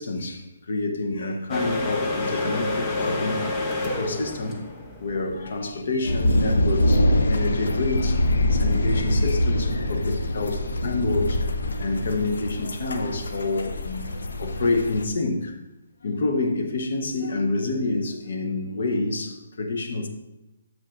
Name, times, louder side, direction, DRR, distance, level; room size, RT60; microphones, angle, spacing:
voice 1, 0.0-3.4 3.8-4.6 5.0-15.6 16.0-20.1, left 3 dB, 55° left, 0.9 m, -28 dB
sound 1, 1.5-8.1, left 2 dB, 15° left, 0.7 m, -29 dB
sound 2, 6.0-15.0, left 1 dB, 85° left, 0.8 m, -24 dB
8.8 x 7.4 x 2.5 m
hypercardioid pair, 170°, 0 cm